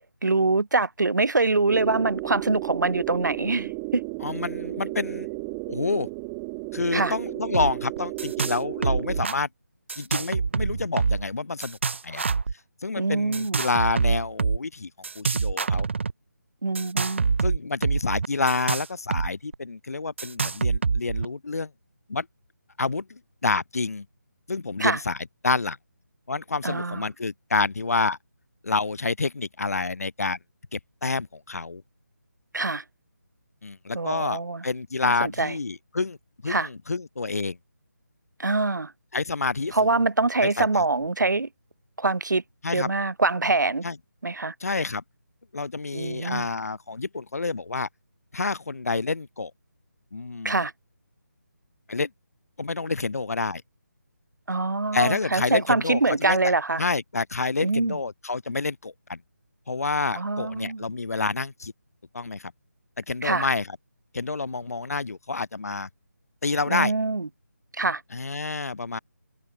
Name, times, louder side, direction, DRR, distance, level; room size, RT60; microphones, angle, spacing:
voice 1, 0.2-4.0 6.9-7.1 13.0-13.6 16.6-17.2 24.8-25.0 26.6-27.1 32.5-32.8 33.9-34.6 35.0-35.5 36.5-36.7 38.4-38.9 39.7-41.5 42.0-42.4 42.7-43.8 44.2-44.5 45.9-46.5 50.4-50.7 54.5-56.8 57.6-58.0 60.2-60.8 63.2-63.5 66.7-67.3 67.8-68.0, right 3 dB, 80° right, 1.8 m, -24 dB
sound 1, 1.7-9.2, right 35 dB, 10° right, 2.1 m, -33 dB
voice 2, 4.2-5.3 5.7-6.1 6.7-9.5 10.0-11.8 12.0-12.2 12.8-14.9 15.1-15.9 17.4-21.7 22.1-22.3 22.8-24.0 24.5-25.2 25.4-25.8 26.3-28.2 28.6-30.4 30.7-31.8 33.6-36.2 36.4-37.6 39.1-40.0 40.4-40.8 42.6-42.9 43.8-44.0 44.6-45.0 45.5-47.9 48.3-49.5 50.1-50.6 51.9-52.1 52.6-53.6 54.9-56.5 56.8-59.2 59.7-61.7 62.1-62.5 63.1-63.8 64.1-65.9 66.4-66.9 68.1-69.0, left 3 dB, 55° left, 4.9 m, -28 dB
sound 2, 7.5-7.7 8.0-8.6 8.8-9.4 9.9-11.3 11.6-12.5 13.3-14.6 15.0-16.1 16.7-19.3 19.5-19.6 20.2-21.2, right 5 dB, 40° right, 2.6 m, -25 dB
figure-of-eight pair, 175°, 10 cm